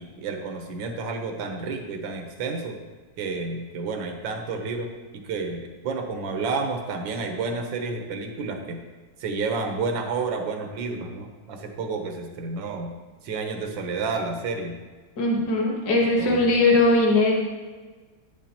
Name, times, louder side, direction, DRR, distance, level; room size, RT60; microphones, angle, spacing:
voice 1, 0.0-2.8 3.2-4.9 5.2-8.8 9.2-12.9 13.2-14.8 16.2-16.5, right 4 dB, 90° right, 4 dB, 1.6 m, -30 dB
voice 2, 15.2-17.3, left 2 dB, 60° left, -2 dB, 1.9 m, -20 dB
9.1 x 7.2 x 2.9 m, 1.4 s
omnidirectional pair, 2.0 m